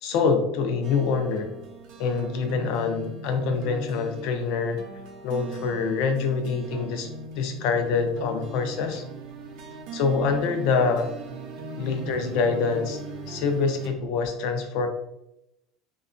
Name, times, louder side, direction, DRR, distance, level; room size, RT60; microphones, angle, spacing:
voice 1, 0.0-1.5 2.0-4.8 5.2-7.1 7.3-9.0 9.9-11.1 11.8-13.0 13.3-14.9, left 5 dB, 65° left, 6 dB, 0.4 m, -25 dB
sound 1, 0.8-13.9, right 3 dB, 65° right, 0.5 m, -40 dB
2.8 x 2.2 x 2.4 m, 0.83 s
supercardioid pair, 130°, 0 cm